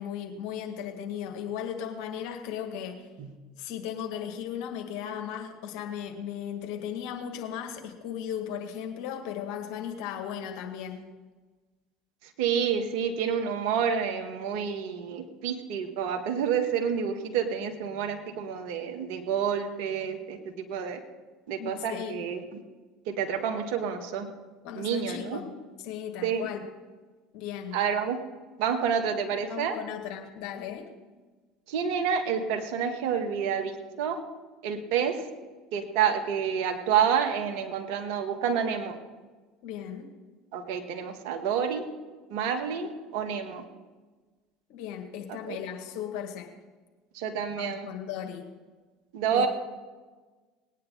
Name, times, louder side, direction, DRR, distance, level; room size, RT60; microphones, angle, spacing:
voice 1, 0.0-3.1 3.6-11.1 21.6-22.2 24.6-26.6 27.3-27.8 29.5-30.9 39.6-40.1 44.7-46.5 47.5-48.4 49.3-49.5, left 9 dB, 60° left, 4 dB, 1.8 m, -36 dB
voice 2, 12.4-21.0 21.5-22.4 23.0-24.3 24.7-25.4 26.2-26.5 27.7-28.2 28.6-29.8 31.7-34.2 34.6-35.3 35.7-39.0 40.5-41.9 42.3-43.6 45.3-45.6 47.1-47.9 49.1-49.5, right 7 dB, 65° right, 5 dB, 1.6 m, -29 dB
19.5 x 9.6 x 4.0 m, 1.3 s
hypercardioid pair, 70°, 0 cm